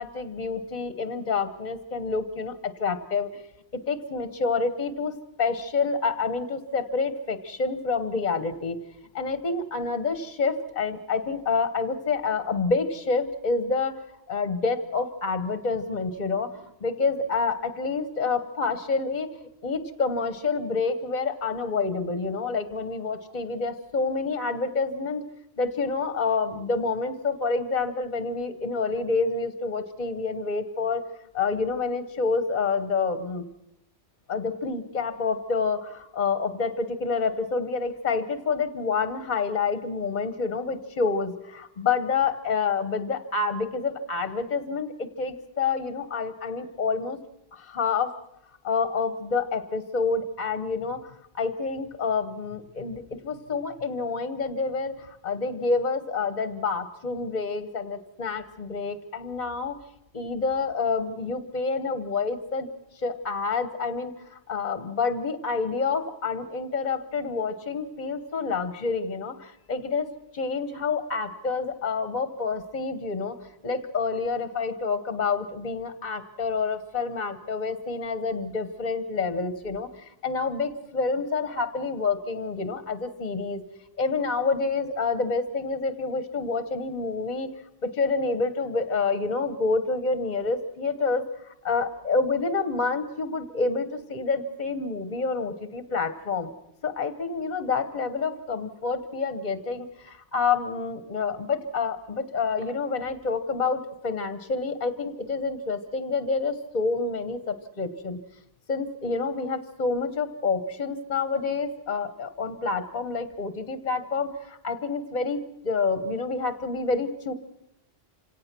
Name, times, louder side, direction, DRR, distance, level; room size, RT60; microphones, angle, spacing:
voice 1, 0.0-3.4 3.9-5.1 5.4-8.8 9.1-14.0 14.3-25.2 25.6-31.0 31.3-33.5 34.3-47.2 47.5-48.2 48.6-59.8 60.1-62.7 63.0-70.1 70.3-73.4 73.6-83.6 84.0-87.5 87.8-96.5 96.8-108.2 108.7-115.4 115.6-117.3, left 4 dB, 45° left, 11 dB, 1.2 m, -28 dB
26.5 x 17.5 x 6.0 m, 0.83 s
omnidirectional pair, 1.1 m